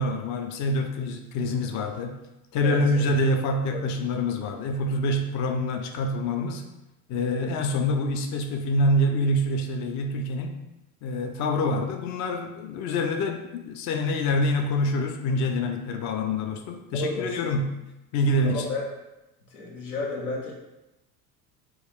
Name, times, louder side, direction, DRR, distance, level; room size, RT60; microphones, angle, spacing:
voice 1, 0.0-2.2 2.5-6.6 7.1-10.6 11.0-17.7 18.1-18.6, left 1 dB, 45° left, 5 dB, 0.4 m, -26 dB
voice 2, 2.6-3.0 3.7-3.8 16.9-17.4 18.4-18.8 19.5-20.5, left 3 dB, 90° left, -2 dB, 0.9 m, -32 dB
3.0 x 2.3 x 3.4 m, 0.97 s
hypercardioid pair, 70°, 43 cm